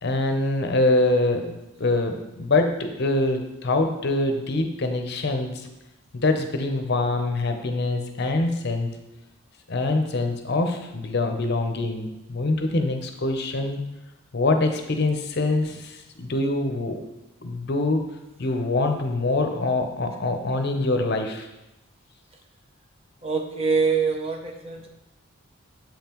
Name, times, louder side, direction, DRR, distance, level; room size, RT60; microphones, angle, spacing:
voice 1, 0.0-5.7 6.1-8.9 9.7-13.8 14.3-17.0 17.4-18.0 18.4-21.5, left 2 dB, 50° left, 5 dB, 0.6 m, -24 dB
voice 2, 23.2-24.9, right 5 dB, 30° right, 4 dB, 0.5 m, -24 dB
7.3 x 5.4 x 3.0 m, 0.93 s
head